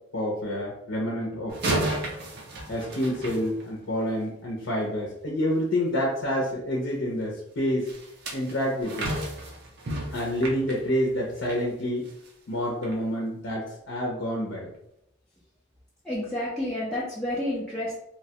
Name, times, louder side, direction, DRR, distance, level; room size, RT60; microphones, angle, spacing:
voice 1, 0.1-1.9 2.7-7.9 8.3-9.1 10.1-12.0 12.5-14.7, equal, 70° left, -3 dB, 0.6 m, -28 dB
sound 1, 1.5-4.1 7.9-11.6 12.1-12.3 12.8-12.9, right 1 dB, 55° right, 0.6 m, -33 dB
voice 2, 16.0-18.0, left 1 dB, 5° left, -8 dB, 0.4 m, -30 dB
3.0 x 2.2 x 2.8 m, 0.78 s
head